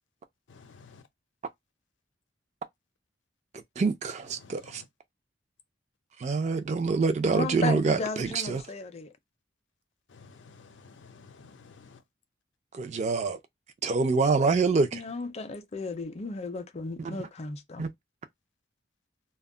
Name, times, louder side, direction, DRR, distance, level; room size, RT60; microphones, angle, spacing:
voice 1, 0.5-1.1 4.2-4.9 10.1-12.0, left 4 dB, 90° left, 0.5 m, -53 dB
voice 2, 3.8-4.8 6.2-8.6 12.7-13.4 13.8-15.0 17.0-17.3 17.8-17.9, right 4 dB, 40° right, 0.4 m, -26 dB
voice 3, 7.3-9.1 14.9-17.9, left 3 dB, 35° left, 0.4 m, -35 dB
2.2 x 2.0 x 3.6 m
head